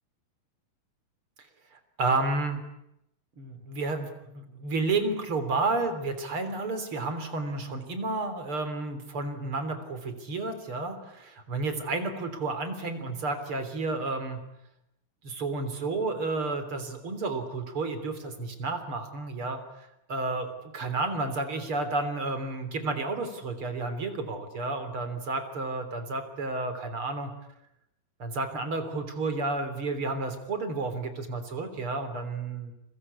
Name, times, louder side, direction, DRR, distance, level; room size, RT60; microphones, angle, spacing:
voice 1, 1.7-2.6 3.4-14.4 15.2-19.6 20.1-27.3 28.2-32.7, right 3 dB, 35° right, 9 dB, 4.0 m, -31 dB
29.5 x 22.5 x 8.6 m, 0.82 s
omnidirectional pair, 4.1 m